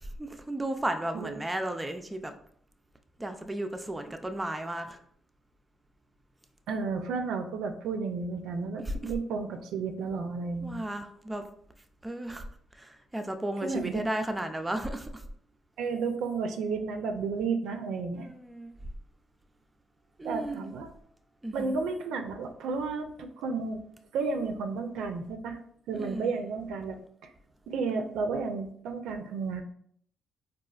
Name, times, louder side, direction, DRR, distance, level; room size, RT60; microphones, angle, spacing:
voice 1, 0.0-2.3 3.2-5.0 8.9-9.1 10.6-11.4 12.0-12.5 12.7-15.2 18.1-18.8 20.2-20.7 21.4-21.7 25.9-26.4, right 1 dB, 15° right, 6 dB, 0.3 m, -34 dB
voice 2, 6.7-10.7 13.6-14.0 15.8-18.3 20.2-20.9 21.5-23.8 24.1-25.6 25.9-27.0 27.7-29.6, right 4 dB, 85° right, 5 dB, 0.4 m, -32 dB
4.0 x 2.4 x 2.3 m, 0.64 s
cardioid pair, 90°, 0 cm